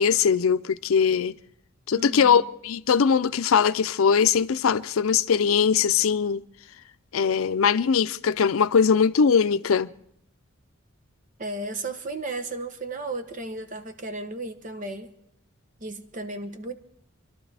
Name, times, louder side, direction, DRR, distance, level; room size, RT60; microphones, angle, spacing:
voice 1, 0.0-1.4 1.9-6.4 7.1-9.9, left 6 dB, 85° left, 0.5 m, -21 dB
voice 2, 1.9-2.4 11.4-15.1 15.8-16.7, right 2 dB, 40° right, 0.9 m, -34 dB
26.5 x 12.0 x 3.4 m
head